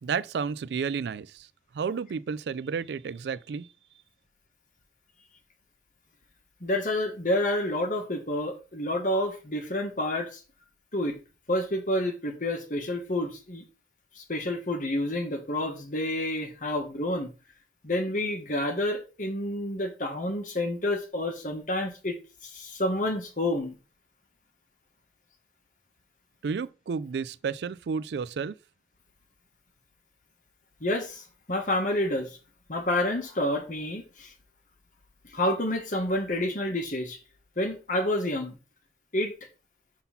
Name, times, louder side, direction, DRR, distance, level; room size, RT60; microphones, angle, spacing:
voice 1, 0.0-1.5 1.7-3.7 26.4-28.6, right 6 dB, 70° right, 0.4 m, -31 dB
voice 2, 6.6-10.4 10.9-11.2 11.5-13.6 14.1-17.3 17.8-22.2 22.4-23.8 30.8-32.4 32.7-34.3 35.3-37.2 37.6-38.6 39.1-39.3, left 1 dB, 50° left, 1.4 m, -29 dB
5.5 x 3.8 x 5.8 m
head